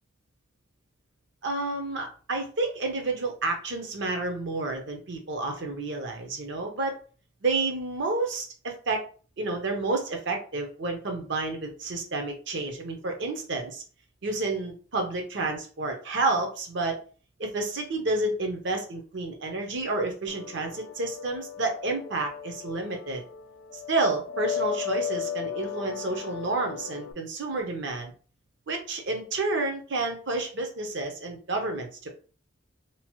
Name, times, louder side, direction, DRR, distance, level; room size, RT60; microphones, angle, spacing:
voice 1, 1.4-6.9 7.4-9.0 9.4-13.8 14.2-17.0 17.4-23.2 23.9-28.1 28.7-32.1, right 3 dB, 55° right, 3 dB, 0.6 m, -30 dB
sound 1, 20.3-27.1, left 8 dB, 60° left, 0.3 m, -36 dB
2.8 x 2.0 x 2.9 m, 0.40 s
head